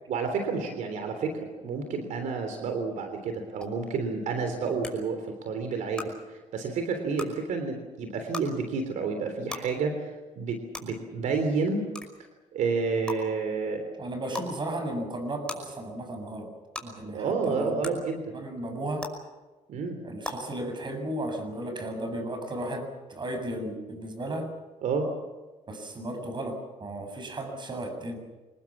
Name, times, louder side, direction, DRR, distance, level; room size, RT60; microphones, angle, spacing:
voice 1, 0.1-11.8 12.5-13.8 17.0-18.3 19.7-20.0 24.8-25.1, right 4 dB, 75° right, 6 dB, 3.4 m, -30 dB
sound 1, 3.6-3.7 4.8-4.9 5.9-6.0 7.1-7.3 8.3-8.4 9.5-9.6 10.7-10.8 11.9-12.1 13.1-13.2 14.3-14.5 15.5-15.6 16.7-16.8 17.8-17.9 19.0-19.1 20.2-20.3, left 2 dB, 5° left, 5.5 m, -35 dB
voice 2, 14.0-16.5 16.8-18.0 18.3-19.1 20.0-24.5 25.7-28.2, right 1 dB, 35° right, 6 dB, 7.4 m, -34 dB
26.5 x 20.5 x 7.3 m, 1.2 s
cardioid pair, 100°, 13 cm